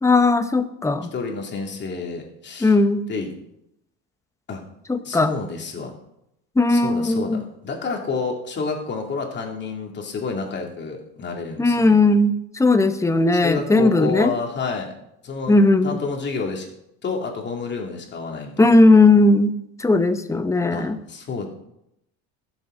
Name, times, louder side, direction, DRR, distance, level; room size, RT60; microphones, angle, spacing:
voice 1, 0.0-1.1 2.6-3.1 4.9-5.3 6.6-7.4 11.6-14.3 15.5-16.0 18.6-21.0, left 2 dB, 10° left, 9 dB, 0.9 m, -17 dB
voice 2, 1.1-2.7 3.1-3.3 4.5-4.6 5.0-5.9 6.7-12.0 13.4-14.9 15.2-15.6 15.8-16.6 17.0-18.8 20.7-21.5, left 4 dB, 30° left, 1 dB, 2.6 m, -29 dB
20.5 x 7.4 x 3.9 m, 0.81 s
supercardioid pair, 115°, 33 cm